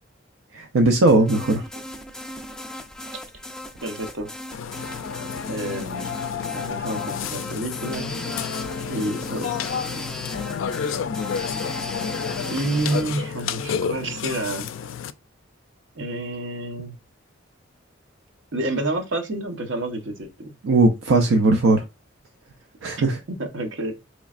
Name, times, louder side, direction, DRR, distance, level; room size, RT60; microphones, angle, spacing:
voice 1, 0.5-1.6 20.6-21.8 22.8-23.2, right 2 dB, 90° right, 0.5 m, -18 dB
sound 1, 1.1-13.0, left 1 dB, 5° left, 0.4 m, -37 dB
voice 2, 3.8-4.3 5.5-6.1 6.5-8.1 8.9-9.6 12.5-14.7 15.9-17.0 18.5-20.5 23.3-24.0, right 2 dB, 75° right, 0.8 m, -29 dB
Burping eructation, 4.5-15.1, left 7 dB, 80° left, 0.3 m, -30 dB
4.1 x 3.1 x 2.4 m
head